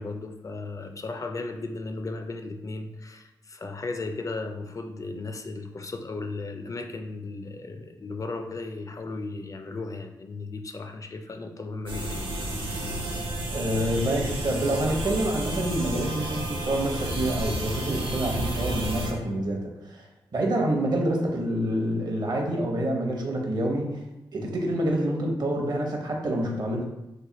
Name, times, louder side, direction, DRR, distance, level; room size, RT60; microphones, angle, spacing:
voice 1, 0.0-12.3 12.6-13.1, left 3 dB, 40° left, 6 dB, 0.4 m, -36 dB
sound 1, 11.9-19.1, right 1 dB, 75° right, 1.0 m, -31 dB
voice 2, 13.5-24.0 24.3-26.8, right 1 dB, 50° right, 1 dB, 0.8 m, -27 dB
3.1 x 2.2 x 4.0 m, 0.92 s
cardioid pair, 50°, 9 cm